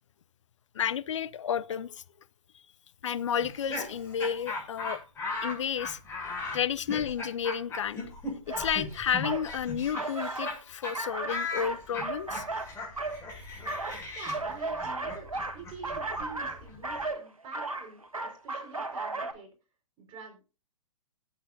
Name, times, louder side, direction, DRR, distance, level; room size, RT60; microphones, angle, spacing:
voice 1, 0.7-2.0 3.0-5.0 5.4-6.0 6.5-8.0 8.5-12.4, left 8 dB, 60° left, 0.7 m, -31 dB
Laughter, 3.4-10.6 10.8-11.0 11.3-17.0, left 3 dB, 15° left, 6.9 m, -38 dB
sound 1, 8.5-8.7 9.2-9.5 9.9-10.6 10.9-13.2 13.7-19.3, right 2 dB, 85° right, 1.6 m, -35 dB
voice 2, 14.1-19.5 20.0-20.4, right 4 dB, 30° right, 5.1 m, -47 dB
21.0 x 8.4 x 2.7 m
figure-of-eight pair, 115°, 17 cm